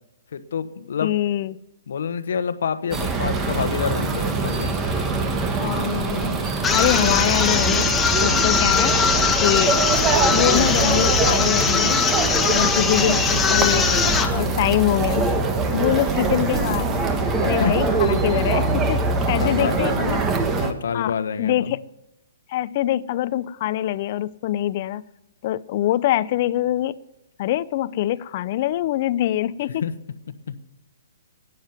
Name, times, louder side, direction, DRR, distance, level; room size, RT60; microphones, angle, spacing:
voice 1, 0.3-1.1 1.9-4.7 17.5-17.7 19.4-19.8 20.5-21.7 29.8-29.9 30.5-30.6, left 7 dB, 70° left, 11 dB, 1.1 m, -27 dB
voice 2, 1.0-1.5 5.6-7.9 8.2-9.0 9.4-12.1 12.5-15.3 15.7-17.0 17.4-20.2 20.9-21.8 22.5-25.1 25.4-26.9 27.4-29.8, left 13 dB, 45° left, 17 dB, 0.5 m, -24 dB
sound 1, 2.9-20.7, right 3 dB, 20° right, 1.5 m, -23 dB
sound 2, 6.6-14.4, left 5 dB, 10° left, 1.2 m, -21 dB
11.5 x 9.3 x 9.1 m, 0.96 s
hypercardioid pair, 135°, 0 cm